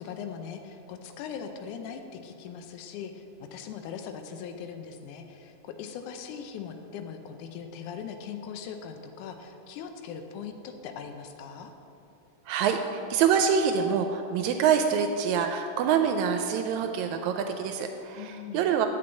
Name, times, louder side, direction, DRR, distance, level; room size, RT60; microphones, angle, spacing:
voice 1, 0.0-3.2 3.5-11.7 18.1-18.7, left 7 dB, 85° left, 6 dB, 2.2 m, -40 dB
voice 2, 12.5-18.9, right 7 dB, 80° right, 6 dB, 1.8 m, -26 dB
8.7 x 5.3 x 7.9 m, 2.8 s
omnidirectional pair, 3.5 m